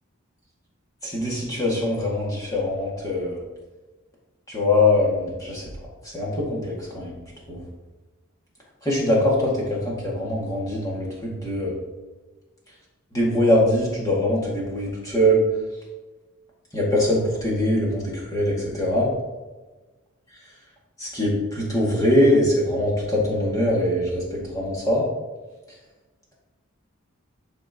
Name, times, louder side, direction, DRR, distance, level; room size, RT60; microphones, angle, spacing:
voice 1, 1.0-3.4 4.5-5.7 6.0-7.2 7.5-7.7 8.8-11.7 13.1-15.4 16.7-19.1 21.0-25.0, left 1 dB, 15° left, -5 dB, 1.9 m, -22 dB
11.5 x 4.5 x 2.9 m, 1.2 s
head